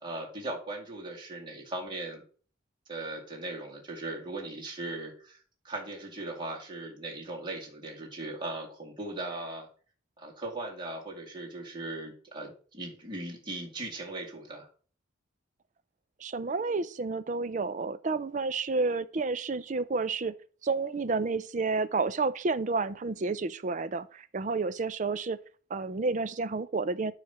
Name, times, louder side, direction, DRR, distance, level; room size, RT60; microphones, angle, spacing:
voice 1, 0.0-2.2 2.9-5.4 5.6-9.7 10.2-14.7, right 2 dB, 25° right, 2.3 m, -38 dB
voice 2, 16.2-20.3 20.6-25.4 25.7-27.1, right 3 dB, 40° right, 0.5 m, -30 dB
9.5 x 3.2 x 6.9 m
head